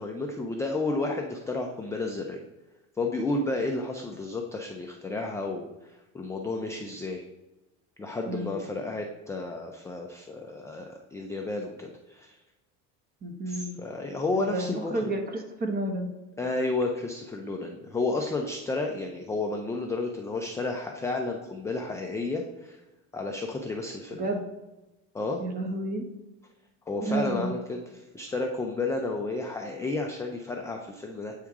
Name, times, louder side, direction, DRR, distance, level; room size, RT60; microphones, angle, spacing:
voice 1, 0.0-2.4 3.0-7.2 8.0-12.4 13.5-15.0 16.4-22.8 23.1-24.3 25.1-25.4 26.9-31.3, left 2 dB, 10° left, 2 dB, 0.3 m, -32 dB
voice 2, 8.2-8.6 13.2-13.8 14.4-16.1 24.2-24.4 25.4-26.1 27.0-27.6, right 2 dB, 25° right, 4 dB, 1.0 m, -31 dB
8.4 x 3.6 x 4.7 m, 1.0 s
cardioid pair, 145°, 35 cm